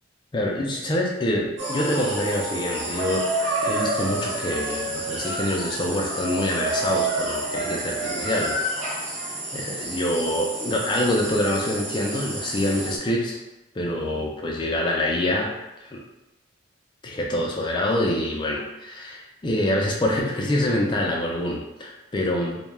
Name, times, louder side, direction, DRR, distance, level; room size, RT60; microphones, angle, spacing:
voice 1, 0.3-3.3 3.6-8.6 8.9-13.4 13.8-15.5 15.8-16.0 17.0-22.6, left 1 dB, 25° left, 0 dB, 0.3 m, -26 dB
sound 1, 1.6-13.0, right 1 dB, 75° right, 0.6 m, -29 dB
2.2 x 2.1 x 3.1 m, 0.98 s
head